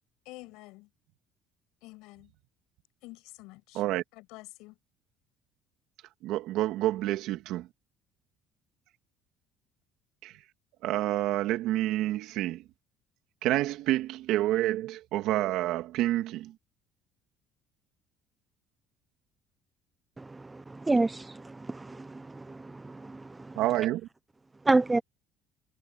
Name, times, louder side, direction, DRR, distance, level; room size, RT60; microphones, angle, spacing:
voice 1, 0.3-0.9 1.8-2.3 3.0-3.8 4.1-4.8, left 22 dB, 85° left, 6.9 m, -48 dB
voice 2, 6.2-7.7 10.2-10.3 10.8-12.6 13.4-16.5 23.6-24.1, right 15 dB, 75° right, 2.4 m, -28 dB
voice 3, 20.9-22.1 22.5-22.6 23.1-23.2 24.7-25.0, right 2 dB, 15° right, 0.6 m, -26 dB
cardioid pair, 110°, 0 cm